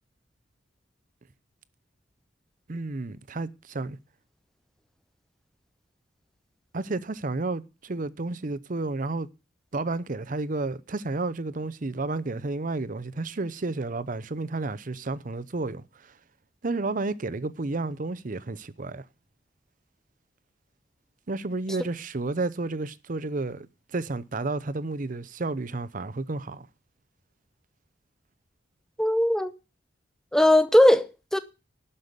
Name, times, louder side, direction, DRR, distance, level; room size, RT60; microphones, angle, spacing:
voice 1, 2.7-4.0 6.7-9.3 9.7-16.1 16.6-19.0 21.3-23.7 23.9-26.7, right 3 dB, 45° right, 0.7 m, -31 dB
voice 2, 29.0-29.5 30.3-31.4, left 1 dB, 5° left, 0.8 m, -19 dB
12.0 x 5.6 x 7.9 m
head